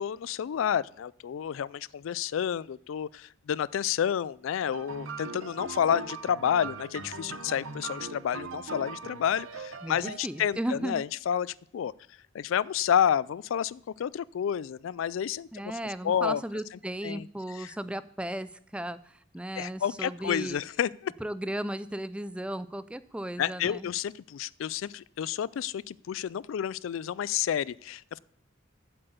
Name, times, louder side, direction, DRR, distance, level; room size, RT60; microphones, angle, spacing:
voice 1, 0.0-11.9 12.3-15.7 16.0-16.4 17.0-17.3 17.6-17.7 19.6-21.1 23.4-28.2, left 9 dB, 75° left, 21 dB, 0.3 m, -30 dB
sound 1, 4.7-10.5, right 4 dB, 85° right, 1.0 m, -40 dB
voice 2, 9.8-11.0 15.5-20.6 21.2-23.9, right 1 dB, 5° right, 15 dB, 0.3 m, -35 dB
7.9 x 7.7 x 8.0 m, 0.65 s
head